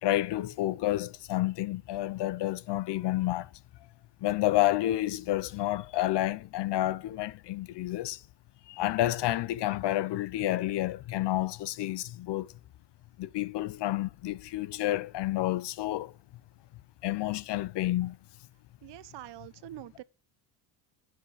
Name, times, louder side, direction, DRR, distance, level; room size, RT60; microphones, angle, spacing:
voice 1, 0.0-3.5 4.2-8.2 8.7-12.5 13.2-16.1 17.0-18.2, left 15 dB, 55° left, 0.9 m, -30 dB
voice 2, 18.8-20.0, right 15 dB, 60° right, 1.0 m, -45 dB
11.0 x 9.2 x 7.8 m
supercardioid pair, 85°, 49 cm